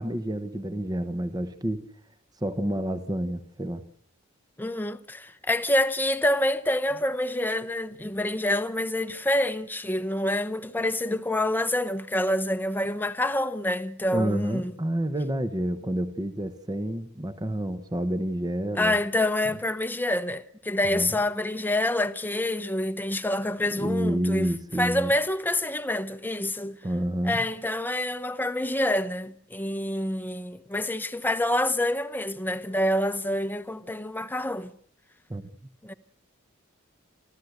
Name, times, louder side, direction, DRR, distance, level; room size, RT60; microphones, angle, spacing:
voice 1, 0.0-1.8 2.4-3.8 14.1-19.0 20.8-21.1 23.8-25.1 26.8-27.4 35.3-35.4, right 1 dB, 20° right, 1.0 m, -29 dB
voice 2, 4.6-14.7 18.8-24.5 24.8-26.8 27.2-34.7 35.8-35.9, left 1 dB, 10° left, 0.9 m, -27 dB
29.5 x 13.5 x 8.0 m
head